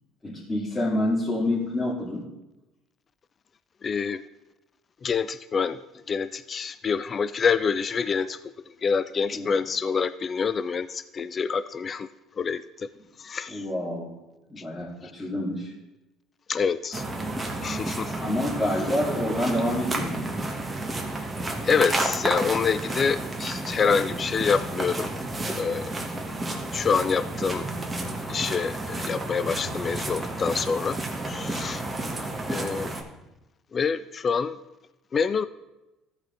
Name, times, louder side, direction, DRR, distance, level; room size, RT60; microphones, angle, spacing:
voice 1, 0.2-2.2 9.3-9.5 13.5-14.2 14.5-15.7 18.2-20.3, left 1 dB, 20° left, -8 dB, 2.6 m, -27 dB
voice 2, 3.8-4.2 5.0-5.8 6.1-8.4 8.8-12.1 12.4-12.9 13.2-13.6 15.0-15.1 16.5-17.0 17.6-18.2 21.6-25.1 25.6-26.0 26.7-27.7 28.3-31.0 31.2-31.8 32.5-32.9 33.7-34.6 35.1-35.5, left 5 dB, 35° left, 14 dB, 0.3 m, -26 dB
sound 1, 16.9-33.0, right 2 dB, 20° right, 1.4 m, -31 dB
13.5 x 5.0 x 3.9 m, 1.0 s
supercardioid pair, 80°, 0 cm